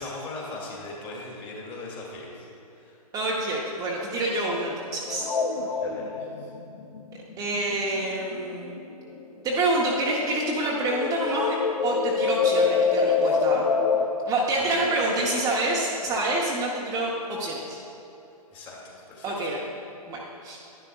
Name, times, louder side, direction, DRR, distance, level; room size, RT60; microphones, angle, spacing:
voice 1, 0.0-2.5 2.7-3.0 5.8-6.5 13.3-13.4 14.5-15.0 16.1-16.2 18.5-19.5, left 2 dB, 25° left, -3 dB, 2.0 m, -39 dB
voice 2, 3.1-5.4 7.4-8.7 9.4-11.5 11.8-13.7 14.2-17.8 19.2-19.6 20.1-20.6, right 2 dB, 15° right, -4 dB, 0.9 m, -27 dB
sound 1, 5.1-9.2 9.5-14.1, left 5 dB, 75° left, 0.8 m, -26 dB
11.0 x 10.5 x 2.3 m, 2.8 s
figure-of-eight pair, 125°, 20 cm